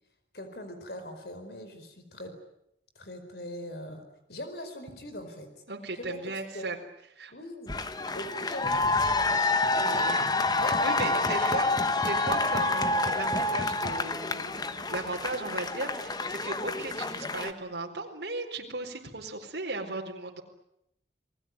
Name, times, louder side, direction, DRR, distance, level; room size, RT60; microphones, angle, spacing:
voice 1, 0.3-2.3 2.9-5.5 5.9-6.8 7.3-10.2 10.6-11.6 16.6-16.7, left 1 dB, 65° left, 7 dB, 4.9 m, -42 dB
voice 2, 5.7-6.8 7.2-7.3 9.9-10.2 10.6-11.7 12.0-20.4, right 2 dB, 75° right, 1 dB, 4.5 m, -36 dB
sound 1, 7.7-17.5, left 2 dB, 25° left, 1.2 m, -28 dB
29.5 x 20.0 x 9.6 m, 0.79 s
head